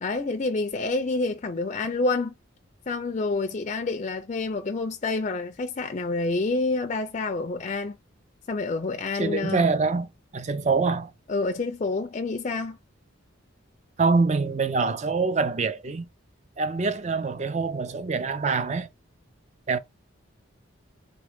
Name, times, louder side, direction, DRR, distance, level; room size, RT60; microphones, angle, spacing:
voice 1, 0.0-2.3 2.9-8.0 8.5-9.6 11.3-12.8, left 3 dB, 35° left, 0.4 m, -28 dB
voice 2, 9.2-11.1 14.0-16.1 16.6-18.9 19.7-19.8, right 4 dB, 35° right, 0.4 m, -25 dB
3.7 x 3.2 x 3.5 m
head